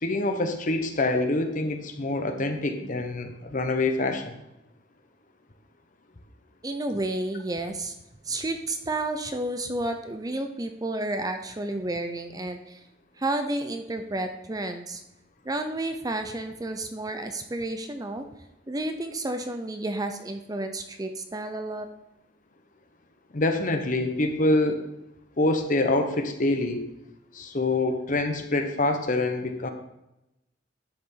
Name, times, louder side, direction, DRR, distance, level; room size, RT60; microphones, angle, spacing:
voice 1, 0.0-4.4 23.3-24.8 25.4-26.8 27.3-29.7, left 2 dB, 45° left, 6 dB, 1.0 m, -25 dB
voice 2, 6.6-7.9 8.3-12.8 13.2-15.0 15.4-18.2 18.7-21.9, right 2 dB, 20° right, 7 dB, 0.6 m, -31 dB
11.0 x 6.9 x 3.8 m, 0.89 s
head